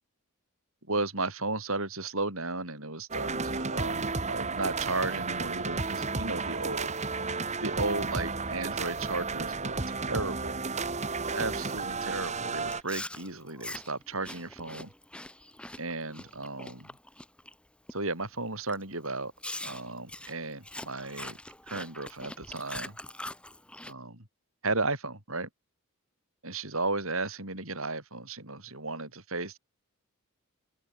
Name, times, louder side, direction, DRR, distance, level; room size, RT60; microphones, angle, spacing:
voice 1, 0.9-10.7 11.3-14.9 15.8-16.9 17.9-19.3 19.6-21.4 21.7-23.0 23.9-24.3 24.6-25.5 26.4-29.6, right 3 dB, 65° right, 7.8 m, -34 dB
sound 1, 3.1-12.8, right 4 dB, 30° right, 1.9 m, -32 dB
Chewing mastication, 12.7-17.5 17.9-18.2 18.7-18.8 19.4-23.9, left 1 dB, 5° left, 2.3 m, -43 dB
open air
head